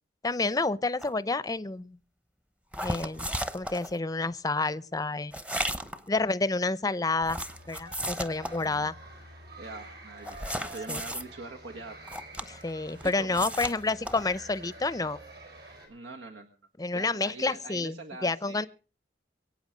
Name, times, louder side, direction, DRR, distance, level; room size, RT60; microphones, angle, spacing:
voice 1, 0.2-2.0 2.8-3.3 3.5-5.3 6.1-7.4 7.7-8.9 10.9-11.0 12.5-15.2 16.8-18.0 18.2-18.7, left 3 dB, 20° left, 0.6 m, -29 dB
sound 1, 1.0-1.1 2.7-3.9 5.3-6.1 7.2-8.7 10.3-11.2 12.0-12.7 13.0-14.3, equal, 5° right, 0.8 m, -35 dB
voice 2, 5.7-6.0 8.6-8.9 9.5-12.0 13.0-13.5 15.9-16.5 16.9-18.7, right 3 dB, 90° right, 1.7 m, -43 dB
sound 2, 7.3-15.9, right 1 dB, 60° right, 5.8 m, -48 dB
23.5 x 8.8 x 5.1 m
head